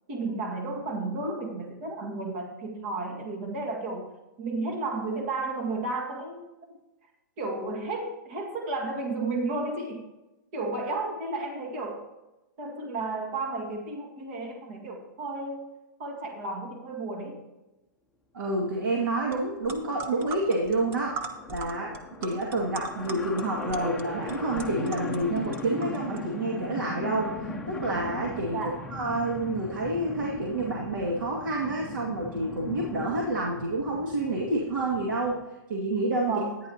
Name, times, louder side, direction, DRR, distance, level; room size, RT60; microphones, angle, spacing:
voice 1, 0.1-4.1 4.4-6.5 7.4-10.1 10.5-12.0 12.6-15.7 16.0-17.5 28.5-28.8 36.3-36.6, right 3 dB, 40° right, 1 dB, 2.0 m, -33 dB
voice 2, 18.3-21.2 21.5-35.4 35.7-36.4, right 2 dB, 85° right, -2 dB, 2.3 m, -29 dB
sound 1, 19.3-19.4 19.6-26.2, right 4 dB, 20° right, 1.0 m, -40 dB
sound 2, 19.6-35.4, left 2 dB, 5° left, 0.9 m, -39 dB
13.5 x 10.0 x 2.9 m, 1.0 s
hypercardioid pair, 155°, 11 cm